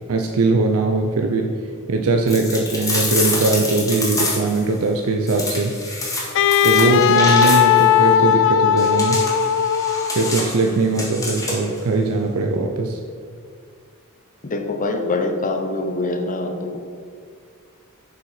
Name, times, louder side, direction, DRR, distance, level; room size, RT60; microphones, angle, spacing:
voice 1, 0.1-1.5 1.9-5.7 6.6-9.2 10.1-13.0, right 3 dB, 80° right, 3 dB, 0.6 m, -20 dB
sound 1, 2.3-4.6 5.3-7.9 8.8-11.8, left 2 dB, 15° left, 1.6 m, -26 dB
Wind instrument woodwind instrument, 6.3-10.4, left 9 dB, 60° left, 0.4 m, -17 dB
voice 2, 14.4-16.8, left 2 dB, 40° left, 4 dB, 0.9 m, -24 dB
7.3 x 5.5 x 5.7 m, 2.1 s
head